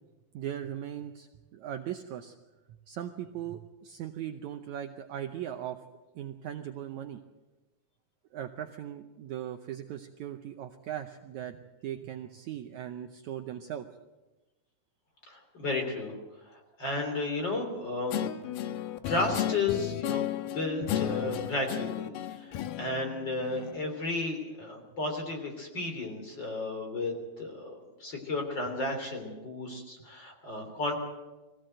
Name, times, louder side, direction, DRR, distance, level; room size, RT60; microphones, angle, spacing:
voice 1, 0.3-2.3 2.9-5.8 6.1-7.2 8.3-13.9, right 10 dB, 85° right, 6 dB, 1.6 m, -39 dB
voice 2, 15.3-16.1 16.5-18.3 19.0-31.0, left 2 dB, 30° left, 3 dB, 3.5 m, -33 dB
Guitar, 18.1-23.9, left 11 dB, 80° left, 2.6 m, -34 dB
22.5 x 16.0 x 7.8 m, 1.1 s
omnidirectional pair, 4.4 m